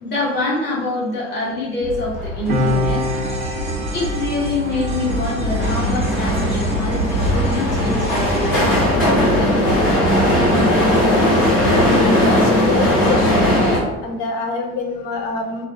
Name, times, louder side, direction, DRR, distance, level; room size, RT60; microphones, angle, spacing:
voice 1, 0.0-3.0 3.9-9.5, left 2 dB, 25° left, -6 dB, 1.1 m, -25 dB
sound 1, 1.8-13.8, equal, 80° left, 0.9 m, -18 dB
sound 2, 2.5-10.9 11.2-11.3, equal, 15° right, 0.7 m, -35 dB
Piano, 2.5-9.5 9.8-10.0, left 1 dB, 85° right, 0.5 m, -29 dB
voice 2, 12.0-15.7, left 4 dB, 50° left, 3 dB, 0.5 m, -26 dB
2.3 x 2.0 x 2.7 m, 1.0 s
figure-of-eight pair, 55°, 40 cm